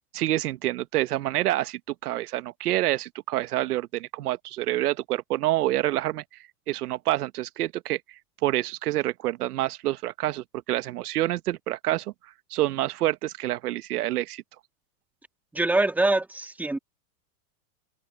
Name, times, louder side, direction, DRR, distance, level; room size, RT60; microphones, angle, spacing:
voice 1, 0.1-6.2 6.7-8.0 8.4-12.1 12.5-14.4, right 15 dB, 80° right, 1.3 m, -27 dB
voice 2, 15.5-16.8, right 2 dB, 5° right, 1.9 m, -24 dB
open air
supercardioid pair, 160°, 45 cm